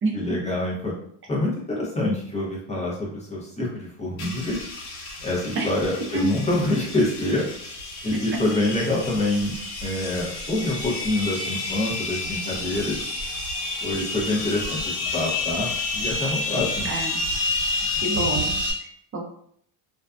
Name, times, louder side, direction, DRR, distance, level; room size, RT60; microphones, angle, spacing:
voice 1, 0.1-0.9 1.3-4.6 5.2-7.4 8.0-13.0 13.8-16.9, left 2 dB, 15° left, -4 dB, 0.6 m, -26 dB
sound 1, 4.2-18.7, left 2 dB, 85° left, 0.9 m, -30 dB
voice 2, 16.8-17.2 18.0-18.6 19.1-19.3, right 3 dB, 25° right, 0 dB, 0.6 m, -26 dB
2.6 x 2.3 x 2.2 m, 0.66 s
cardioid pair, 125°, 50 cm